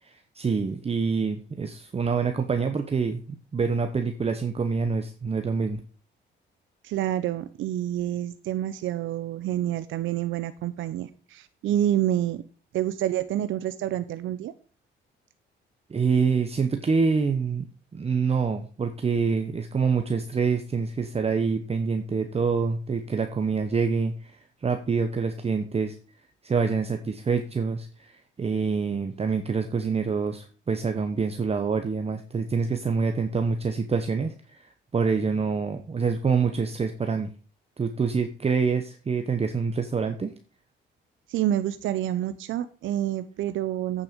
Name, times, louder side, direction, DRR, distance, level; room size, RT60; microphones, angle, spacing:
voice 1, 0.0-3.2 3.5-5.8 15.9-17.7 17.9-26.0 26.4-37.3 37.8-40.3, right 5 dB, 30° right, 6 dB, 1.0 m, -26 dB
voice 2, 6.8-12.4 12.7-14.5 41.3-44.0, right 12 dB, 80° right, 12 dB, 0.6 m, -28 dB
8.8 x 6.8 x 5.1 m, 0.38 s
cardioid pair, 90°, 20 cm